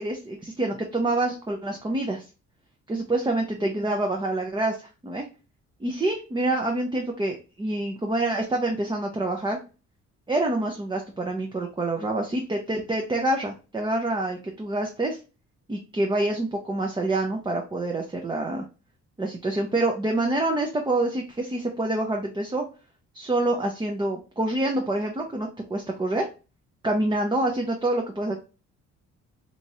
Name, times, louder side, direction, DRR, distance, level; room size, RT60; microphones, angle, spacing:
voice 1, 0.0-2.2 2.9-5.3 5.8-9.6 10.3-15.2 15.7-18.6 19.2-22.6 23.1-26.3 26.8-28.4, right 2 dB, 15° right, 2 dB, 0.6 m, -26 dB
3.0 x 2.5 x 4.1 m, 0.32 s
cardioid pair, 90°, 30 cm